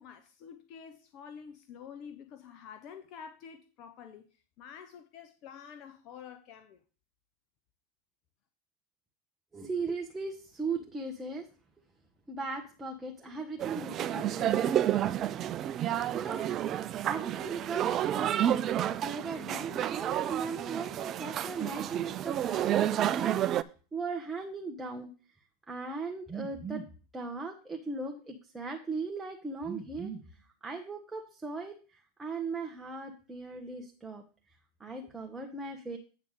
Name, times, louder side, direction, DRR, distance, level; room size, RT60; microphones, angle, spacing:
voice 1, 0.0-4.2 4.6-6.8, left 7 dB, 50° left, 7 dB, 0.9 m, -48 dB
voice 2, 9.5-11.5 12.3-15.3 15.7-15.8 16.1-16.5 17.0-18.3 18.6-25.1 25.7-26.9 27.1-34.2 34.8-36.0, right 4 dB, 15° right, 2 dB, 1.2 m, -38 dB
sound 1, 13.6-23.6, right 11 dB, 40° right, 0.4 m, -30 dB
8.7 x 3.5 x 6.5 m, 0.36 s
hypercardioid pair, 95°, 0 cm